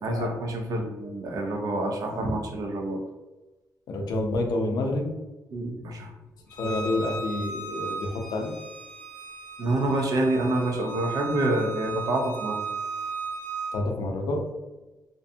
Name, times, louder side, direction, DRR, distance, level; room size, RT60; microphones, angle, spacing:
voice 1, 0.0-3.0 5.5-6.1 9.6-12.6, right 1 dB, 60° right, 2 dB, 0.5 m, -27 dB
voice 2, 3.9-5.2 6.6-8.5 13.7-14.4, left 2 dB, 85° left, 3 dB, 0.4 m, -28 dB
Bowed string instrument, 6.5-13.7, right 4 dB, 20° left, 0.8 m, -36 dB
2.5 x 2.2 x 2.6 m, 1.1 s
wide cardioid pair, 145°, 7 cm